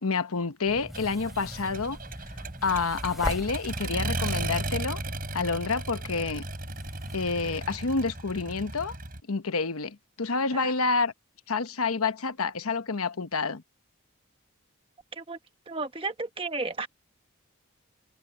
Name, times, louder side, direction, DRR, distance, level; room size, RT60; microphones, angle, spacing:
voice 1, 0.0-2.0 2.6-5.0 5.3-6.4 7.1-8.9 9.3-11.1 11.5-13.6, left 4 dB, 85° left, 1.0 m, -28 dB
sound 1, 0.6-7.7, equal, ahead, 5.4 m, -42 dB
Accelerating revving vroom, 0.9-9.2, right 2 dB, 40° right, 6.9 m, -35 dB
voice 2, 15.7-16.9, right 3 dB, 25° right, 1.3 m, -33 dB
open air
head